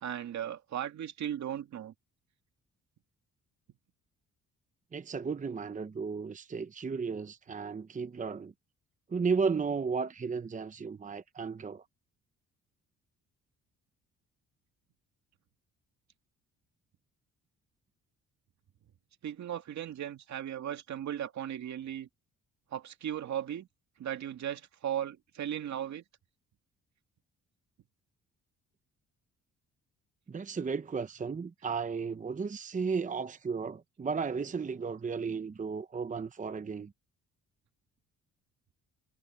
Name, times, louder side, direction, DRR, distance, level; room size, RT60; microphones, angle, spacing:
voice 1, 0.0-1.9 19.2-22.1 22.7-23.7 24.0-26.0, right 10 dB, 65° right, 2.5 m, -37 dB
voice 2, 4.9-8.5 9.1-11.8 30.3-36.9, right 5 dB, 25° right, 0.9 m, -34 dB
cardioid pair, 90°, 30 cm